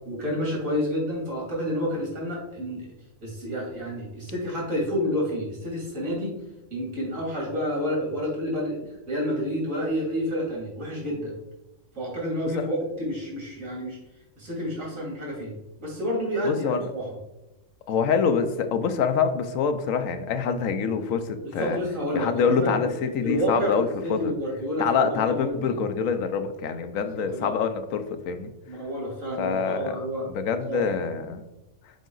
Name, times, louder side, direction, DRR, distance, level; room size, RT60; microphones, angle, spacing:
voice 1, 0.0-2.9 3.2-6.3 6.7-8.8 9.1-11.3 11.9-14.0 14.4-15.5 15.8-17.2 21.4-22.8 23.2-25.7 27.0-27.6 28.7-30.3 30.7-31.0, equal, 80° right, -3 dB, 3.1 m, -29 dB
voice 2, 16.4-16.8 17.9-21.8 22.1-24.3 24.8-28.5 29.4-30.0 30.3-31.4, left 6 dB, 80° left, 8 dB, 1.1 m, -25 dB
7.3 x 4.9 x 3.9 m, 0.98 s
omnidirectional pair, 1.4 m